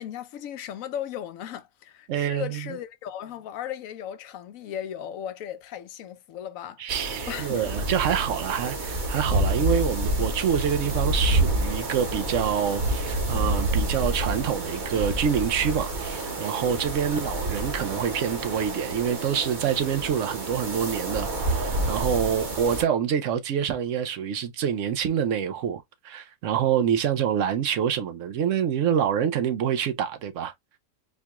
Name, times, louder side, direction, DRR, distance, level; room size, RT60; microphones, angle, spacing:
voice 1, 0.0-6.9 7.3-7.7, left 10 dB, 80° left, 1.0 m, -36 dB
voice 2, 2.1-2.8 6.8-30.5, right 8 dB, 70° right, 0.9 m, -26 dB
sound 1, 6.9-22.8, right 1 dB, 40° right, 0.9 m, -28 dB
4.4 x 2.3 x 2.9 m
omnidirectional pair, 1.4 m